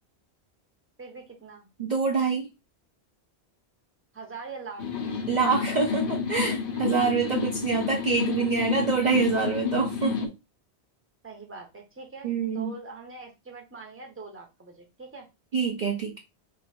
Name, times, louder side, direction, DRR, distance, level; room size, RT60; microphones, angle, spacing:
voice 1, 1.0-1.7 4.1-4.8 11.2-15.3, right 4 dB, 15° right, 0.7 m, -43 dB
voice 2, 1.8-2.5 5.3-10.3 12.2-12.7 15.5-16.2, right 5 dB, 50° right, 0.6 m, -26 dB
sound 1, 4.8-10.3, left 6 dB, 55° left, 0.8 m, -30 dB
3.0 x 2.7 x 4.1 m
omnidirectional pair, 1.1 m